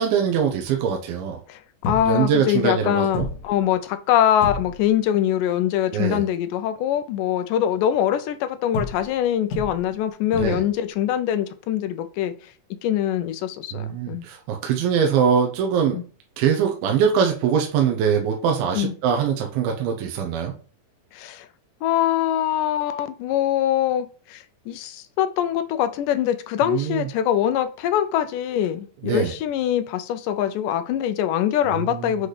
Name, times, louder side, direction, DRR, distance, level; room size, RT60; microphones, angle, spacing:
voice 1, 0.0-1.4 2.1-3.3 5.9-6.2 10.4-10.6 13.7-16.0 16.4-20.5 26.7-27.1 29.0-29.3 31.7-32.2, right 7 dB, 85° right, 2 dB, 2.7 m, -22 dB
sound 1, 1.8-2.3 2.7-2.8 3.1-3.7 4.4-5.0 8.7-9.2 9.5-10.0 10.3-10.8 13.1-13.2, left 2 dB, 60° left, 3.0 m, -31 dB
voice 2, 1.9-12.3 12.8-14.3 15.9-16.0 18.7-18.9 21.1-21.5 21.8-32.3, left 11 dB, 80° left, 9 dB, 1.9 m, -23 dB
8.0 x 4.0 x 3.3 m, 0.39 s
omnidirectional pair, 4.2 m